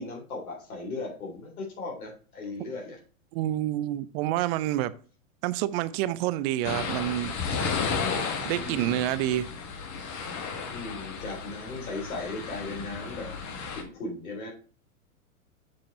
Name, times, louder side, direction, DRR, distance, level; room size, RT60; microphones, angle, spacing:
voice 1, 0.0-3.0 8.5-9.4 10.7-13.3 13.8-14.5, left 2 dB, 80° left, 3.8 m, -37 dB
voice 2, 3.3-4.9 5.4-7.3 8.4-9.5, right 13 dB, 45° right, 0.7 m, -28 dB
sound 1, 6.6-13.8, left 5 dB, 40° left, 1.7 m, -33 dB
7.4 x 5.2 x 4.2 m
hypercardioid pair, 120°, 43 cm